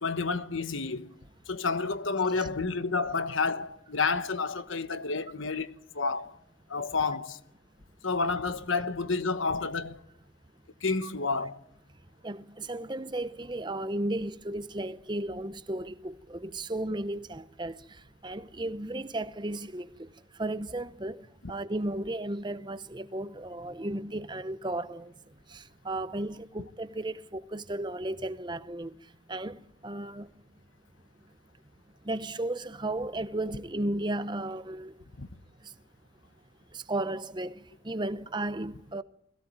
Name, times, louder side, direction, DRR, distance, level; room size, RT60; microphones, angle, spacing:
voice 1, 0.0-1.1 1.5-6.3 6.7-7.4 8.0-10.0 10.8-11.6 35.2-35.3, left 4 dB, 75° left, 1.2 m, -30 dB
voice 2, 12.2-17.8 18.2-20.1 20.4-25.1 25.5-28.9 29.3-30.3 32.0-34.9 36.7-39.0, right 1 dB, 20° right, 0.8 m, -34 dB
21.5 x 16.5 x 9.0 m
head